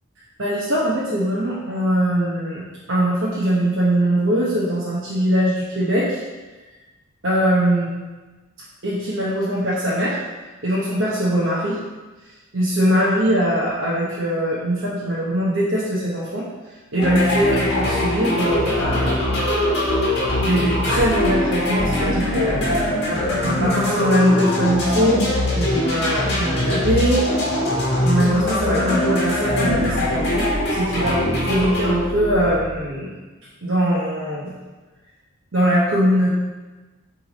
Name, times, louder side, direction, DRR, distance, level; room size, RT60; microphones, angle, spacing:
voice 1, 0.4-6.2 7.2-7.9 8.8-10.2 10.6-11.8 12.5-16.5 16.9-19.2 20.4-25.2 25.5-27.3 28.0-33.2 33.6-34.5 35.5-36.3, equal, 55° right, -7 dB, 1.1 m, -21 dB
sound 1, 17.0-32.9, left 1 dB, 50° left, 1.9 m, -22 dB
8.0 x 3.5 x 4.1 m, 1.2 s
head